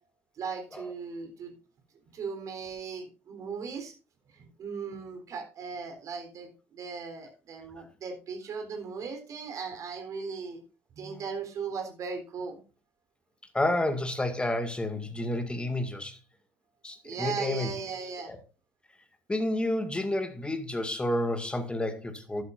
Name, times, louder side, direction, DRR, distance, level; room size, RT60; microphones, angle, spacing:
voice 1, 0.4-1.5 2.1-3.9 4.6-10.6 11.0-12.6 17.0-18.3, right 5 dB, 40° right, 3.7 m, -37 dB
voice 2, 13.5-16.2 16.8-17.7 18.3-18.4 19.3-22.4, left 1 dB, 10° left, 2.1 m, -30 dB
13.0 x 11.0 x 2.6 m
figure-of-eight pair, 60°, 8 cm